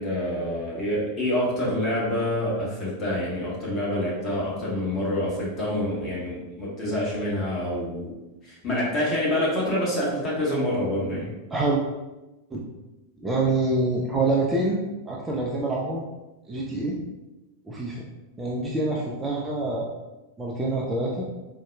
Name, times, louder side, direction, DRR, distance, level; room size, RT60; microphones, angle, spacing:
voice 1, 0.0-8.1 8.4-11.3, left 1 dB, 25° left, -6 dB, 1.1 m, -27 dB
voice 2, 13.2-14.8 15.1-16.0 16.5-17.0 17.7-18.0 18.4-19.9 20.4-21.3, right 2 dB, 15° right, -3 dB, 0.4 m, -26 dB
3.9 x 2.1 x 2.2 m, 1.1 s
figure-of-eight pair, 90°, 0 cm